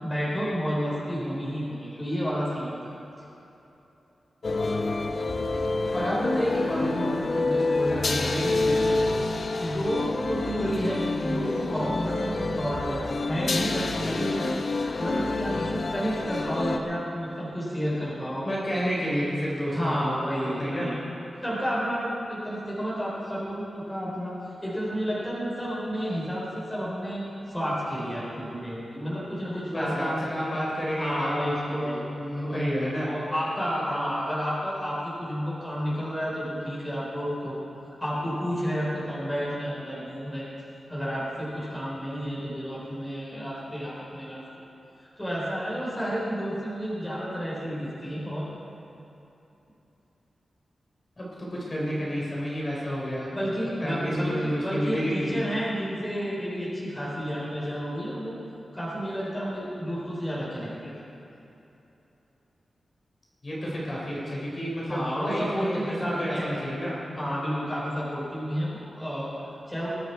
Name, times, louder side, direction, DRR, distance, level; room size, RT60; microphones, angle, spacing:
voice 1, 0.0-2.9 9.6-14.6 15.0-18.5 19.7-20.9 21.4-24.4 24.6-30.5 31.0-32.0 33.1-37.6 37.9-40.5 40.9-44.4 45.0-48.5 53.3-58.4 58.7-61.0 64.9-66.5 67.2-69.9, equal, 10° left, -8 dB, 4.2 m, -31 dB
sound 1, 4.4-16.8, left 2 dB, 50° left, 1.0 m, -28 dB
voice 2, 5.9-9.0 18.4-20.2 20.6-20.9 29.7-33.2 51.2-53.3 53.8-55.4 63.4-67.0, equal, 25° left, -6 dB, 4.3 m, -30 dB
21.0 x 12.0 x 4.6 m, 3.0 s
wide cardioid pair, 140°, 0 cm